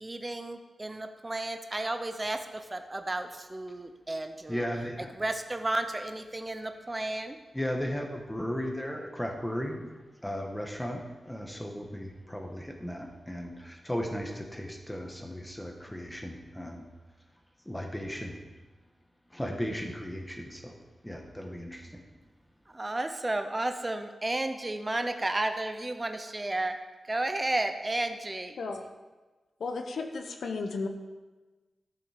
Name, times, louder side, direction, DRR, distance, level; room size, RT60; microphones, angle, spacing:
voice 1, 0.0-2.4 2.7-4.6 5.2-7.4 22.8-26.7 27.1-28.5, right 2 dB, 20° right, 7 dB, 0.6 m, -32 dB
voice 2, 4.5-5.1 7.5-9.8 10.2-16.9 17.6-18.4 19.3-22.0, equal, 5° left, 2 dB, 1.3 m, -36 dB
voice 3, 29.6-30.9, left 4 dB, 85° left, 5 dB, 1.0 m, -34 dB
13.0 x 7.0 x 5.1 m, 1.2 s
wide cardioid pair, 150°, 0 cm